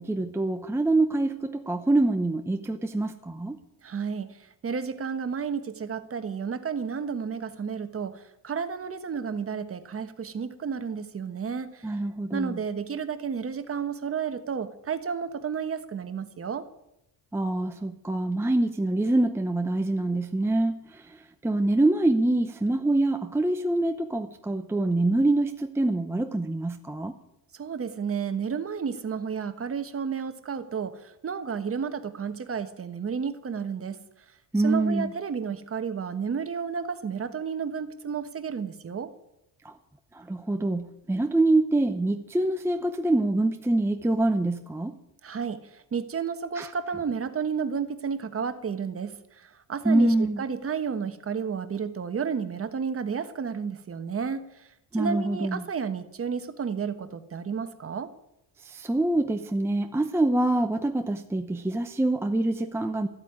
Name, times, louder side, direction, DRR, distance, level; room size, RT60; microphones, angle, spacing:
voice 1, 0.0-3.6 11.8-12.6 17.3-27.1 34.5-35.1 39.6-39.7 40.1-44.9 46.6-46.7 49.8-50.4 54.9-55.6 58.6-63.1, right 2 dB, 5° right, 6 dB, 0.6 m, -25 dB
voice 2, 3.8-4.3 4.6-11.9 12.3-16.6 27.5-34.0 34.6-39.1 45.2-54.7 55.0-58.1, right 6 dB, 35° right, 10 dB, 1.3 m, -32 dB
14.0 x 8.4 x 9.6 m, 0.83 s
cardioid pair, 125°, 42 cm